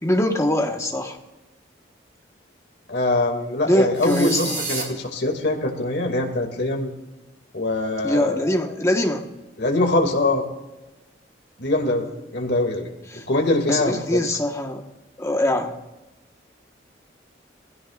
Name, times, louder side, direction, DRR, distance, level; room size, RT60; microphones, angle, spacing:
voice 1, 0.0-1.2 3.7-4.6 8.0-9.2 13.1-13.2 13.7-14.8 15.2-15.8, left 1 dB, 15° left, 3 dB, 1.3 m, -22 dB
voice 2, 2.9-6.9 7.5-8.4 9.6-10.4 11.6-12.9 13.3-14.2, left 2 dB, 65° left, 2 dB, 2.3 m, -23 dB
sound 1, 3.9-4.8, right 3 dB, 45° right, 3.1 m, -30 dB
21.0 x 16.5 x 2.5 m, 1.0 s
head